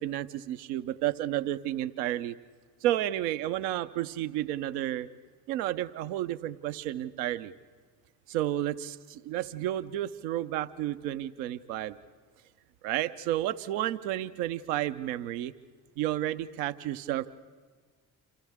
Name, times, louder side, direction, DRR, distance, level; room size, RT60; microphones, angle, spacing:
voice 1, 0.0-2.4 2.8-5.1 5.5-7.5 8.3-12.0 12.8-15.5 16.0-17.3, right 13 dB, 70° right, 12 dB, 0.9 m, -31 dB
28.5 x 27.5 x 3.6 m, 1.5 s
hypercardioid pair, 50°, 50 cm